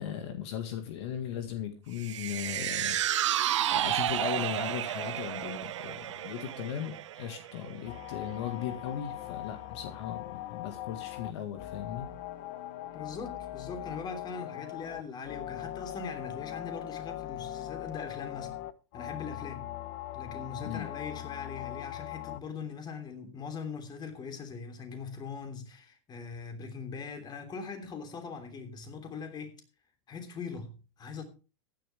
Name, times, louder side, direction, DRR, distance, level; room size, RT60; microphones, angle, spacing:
voice 1, 0.0-3.4 3.7-12.1 20.6-20.9, left 9 dB, 70° left, 1.9 m, -37 dB
sound 1, 2.0-8.4 8.8-8.9, right 12 dB, 85° right, 0.8 m, -32 dB
sound 2, 7.8-22.4, left 14 dB, 50° left, 0.9 m, -40 dB
voice 2, 12.9-18.5 18.9-19.7 20.1-29.6 30.1-31.2, left 5 dB, 30° left, 3.3 m, -41 dB
15.0 x 10.5 x 3.5 m
hypercardioid pair, 120°, 15 cm